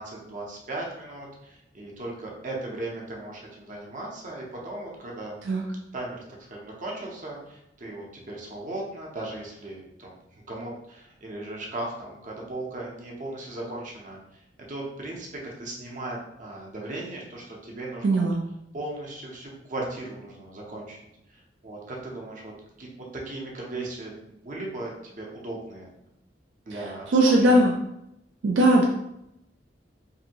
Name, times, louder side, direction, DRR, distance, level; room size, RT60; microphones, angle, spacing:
voice 1, 0.0-5.4 5.9-14.2 14.7-18.2 18.7-21.0 21.3-22.5 22.8-26.0 26.7-27.6, right 2 dB, 45° right, -2 dB, 0.7 m, -37 dB
voice 2, 18.0-18.4 27.1-27.7 28.4-28.8, right 1 dB, 75° right, -1 dB, 0.4 m, -19 dB
2.7 x 2.6 x 2.8 m, 0.82 s
head